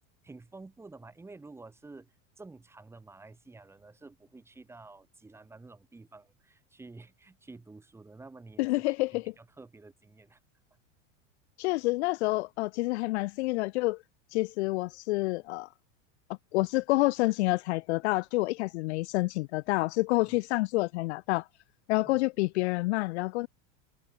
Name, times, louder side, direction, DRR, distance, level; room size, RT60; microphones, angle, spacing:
voice 1, 0.2-8.7 9.1-10.4 20.3-20.4 22.0-22.2, right 3 dB, 5° right, 6.3 m, -50 dB
voice 2, 8.6-9.3 11.6-14.0 14.3-15.7 16.5-21.5 21.9-23.5, left 21 dB, 65° left, 0.8 m, -28 dB
supercardioid pair, 175°, 37 cm